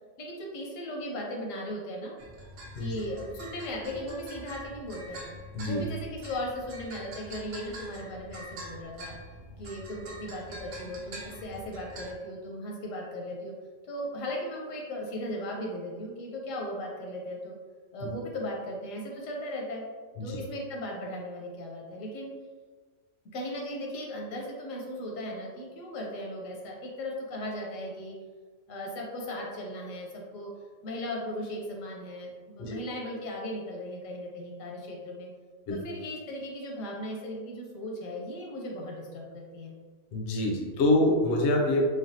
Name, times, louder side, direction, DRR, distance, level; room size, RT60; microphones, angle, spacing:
voice 1, 0.2-2.1 2.8-5.2 5.6-9.1 9.6-13.5 13.8-17.5 17.9-19.8 20.2-22.3 23.3-28.1 28.7-30.5 30.8-35.3 35.7-39.7, left 1 dB, 85° left, -1 dB, 1.1 m, -37 dB
sound 1, 2.2-12.1, equal, 85° right, 1.0 m, -45 dB
voice 2, 40.1-41.9, left 1 dB, 65° left, 0 dB, 0.7 m, -25 dB
3.3 x 2.2 x 2.7 m, 1.4 s
omnidirectional pair, 1.3 m